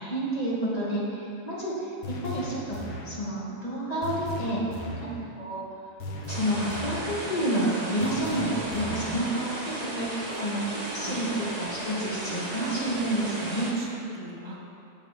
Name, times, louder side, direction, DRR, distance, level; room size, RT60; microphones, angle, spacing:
voice 1, 0.0-4.6 5.0-5.1 5.4-5.6 6.3-13.7, right 1 dB, 30° left, -6 dB, 1.0 m, -30 dB
sound 1, 2.0-3.2 4.0-5.2 6.0-7.2 8.0-9.2, left 1 dB, 75° left, 1.3 m, -37 dB
voice 2, 4.8-5.4 9.1-9.5 11.0-11.1 13.8-14.6, right 4 dB, 75° right, -2 dB, 1.6 m, -41 dB
sound 2, 6.3-13.7, right 1 dB, 35° right, 0.7 m, -35 dB
7.1 x 5.5 x 3.4 m, 2.5 s
omnidirectional pair, 1.7 m